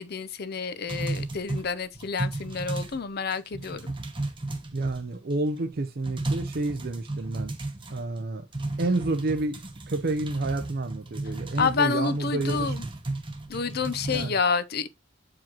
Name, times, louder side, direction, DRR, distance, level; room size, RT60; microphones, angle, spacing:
voice 1, 0.0-3.9 11.6-12.8 13.5-14.9, left 5 dB, 50° left, 0.6 m, -29 dB
sound 1, 0.9-3.1 3.3-5.3 5.7-5.8 6.0-8.2 8.5-14.3, right 2 dB, 25° right, 0.9 m, -34 dB
voice 2, 4.7-7.5 7.9-8.4 8.8-12.8 14.1-14.4, right 2 dB, 50° right, 0.6 m, -29 dB
7.4 x 4.9 x 2.9 m
head